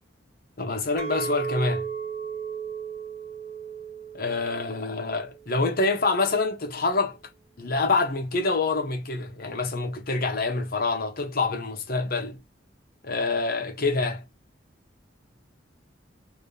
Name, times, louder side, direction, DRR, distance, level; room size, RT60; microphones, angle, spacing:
voice 1, 0.6-1.9 4.1-7.2 7.6-12.4 13.0-14.2, left 3 dB, 50° left, 1.0 m, -26 dB
Chink clink, 1.0-6.2, right 6 dB, 15° right, 0.6 m, -35 dB
3.0 x 2.8 x 3.2 m
head